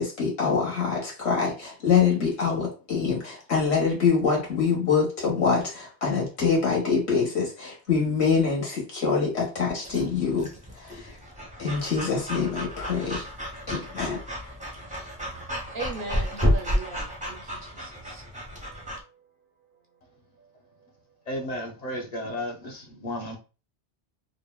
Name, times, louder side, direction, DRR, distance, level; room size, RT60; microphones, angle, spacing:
voice 1, 0.0-10.5 10.8-11.1 11.6-13.3 13.7-14.2, left 5 dB, 75° left, 1.4 m, -25 dB
Breathing / Dog, 9.8-19.0, equal, 10° right, 0.5 m, -31 dB
voice 2, 15.7-18.2, right 3 dB, 60° right, 0.6 m, -38 dB
voice 3, 21.3-23.4, left 1 dB, 40° left, 0.7 m, -33 dB
3.5 x 2.1 x 2.2 m
omnidirectional pair, 1.1 m